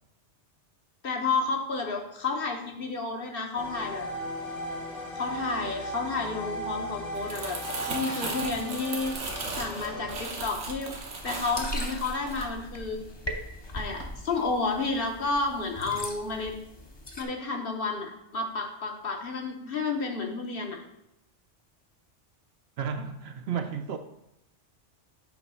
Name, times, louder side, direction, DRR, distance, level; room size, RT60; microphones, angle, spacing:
voice 1, 1.0-4.1 5.1-7.6 7.9-9.3 9.6-10.9 11.2-13.0 13.7-16.5 17.2-20.8, left 3 dB, 55° left, 1.1 m, -31 dB
sound 1, 3.5-10.1, equal, 85° left, 2.4 m, -37 dB
Crumpling crinkling, 7.0-13.4 13.7-14.0, right 3 dB, 80° right, 1.4 m, -36 dB
sound 2, 11.0-17.2, left 1 dB, 25° left, 0.7 m, -41 dB
voice 2, 22.8-24.0, right 7 dB, 65° right, 0.8 m, -32 dB
8.4 x 3.2 x 5.5 m
omnidirectional pair, 1.2 m